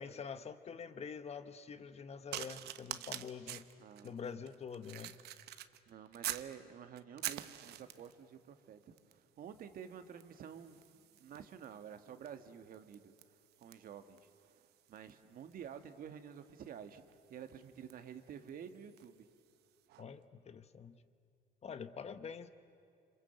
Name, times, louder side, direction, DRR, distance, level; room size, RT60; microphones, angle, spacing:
voice 1, 0.0-3.7 4.0-5.2 20.0-21.0 21.6-22.5, left 6 dB, 40° left, 11 dB, 1.2 m, -46 dB
sound 1, 2.3-6.5 7.0-8.2 9.0-9.2 9.5-19.2 19.9-20.0, right 13 dB, 75° right, 1.0 m, -47 dB
voice 2, 3.8-4.1 5.9-13.1 13.6-17.0 17.3-19.3, right 8 dB, 60° right, 9 dB, 1.7 m, -50 dB
27.0 x 26.5 x 8.1 m, 2.5 s
cardioid pair, 110°, 17 cm